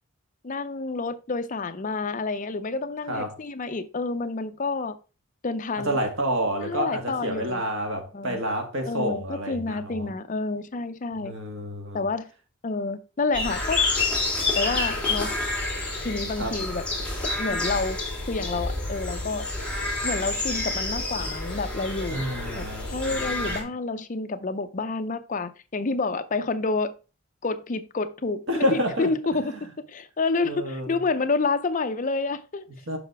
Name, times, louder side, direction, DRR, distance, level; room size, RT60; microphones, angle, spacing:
voice 1, 0.4-5.0 5.4-6.0 6.6-7.7 8.1-8.4 8.9-11.3 11.9-12.3 12.6-13.8 14.6-15.3 16.0-16.8 17.4-19.5 20.0-22.2 22.6-26.9 27.4-29.5 29.9-32.7, left 3 dB, 35° left, 0.5 m, -29 dB
voice 2, 3.1-3.4 5.8-10.1 11.2-12.0 16.4-16.5 22.1-23.6 28.5-29.1 29.5-29.6 30.4-30.9 32.9-33.0, equal, 60° right, 1.7 m, -29 dB
sound 1, 13.3-23.6, left 2 dB, 5° left, 2.6 m, -28 dB
6.9 x 5.8 x 3.4 m
head